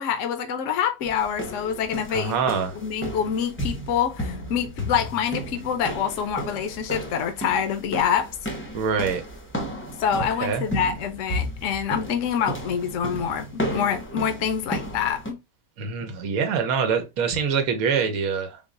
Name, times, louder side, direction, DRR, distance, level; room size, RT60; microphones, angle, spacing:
voice 1, 0.0-2.4 2.8-8.3 10.0-15.4, left 8 dB, 70° left, 0.9 m, -26 dB
sound 1, 1.0-15.3, equal, 15° left, 0.4 m, -33 dB
voice 2, 2.1-2.8 8.7-9.2 10.1-10.6 15.8-18.6, right 6 dB, 90° right, 1.1 m, -25 dB
3.8 x 2.0 x 3.6 m
omnidirectional pair, 1.4 m